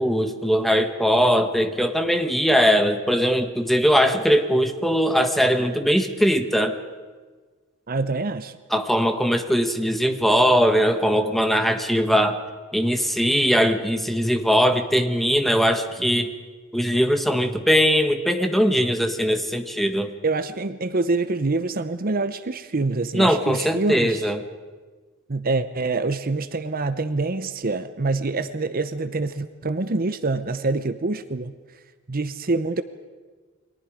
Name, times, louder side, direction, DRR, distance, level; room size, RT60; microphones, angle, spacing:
voice 1, 0.0-6.8 8.7-12.4 12.7-16.3 16.7-20.1 23.1-24.4, equal, ahead, 7 dB, 1.3 m, -20 dB
voice 2, 7.9-8.6 20.2-24.3 25.3-31.5 32.1-32.8, right 3 dB, 45° right, 11 dB, 0.8 m, -25 dB
29.0 x 23.0 x 5.1 m, 1.4 s
head